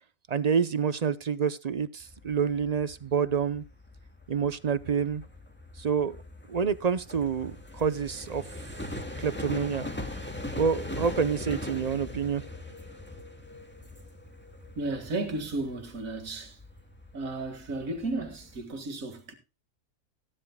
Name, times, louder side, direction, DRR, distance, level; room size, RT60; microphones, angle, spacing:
voice 1, 0.3-3.6 4.3-5.2 5.8-6.2 6.5-8.4 9.2-9.9 10.5-12.4, right 6 dB, 45° right, 0.6 m, -28 dB
sound 1, 2.0-18.6, left 1 dB, 10° left, 1.9 m, -41 dB
voice 2, 14.8-16.6 17.1-19.3, right 2 dB, 90° right, 2.3 m, -34 dB
17.5 x 10.0 x 2.2 m
omnidirectional pair, 1.4 m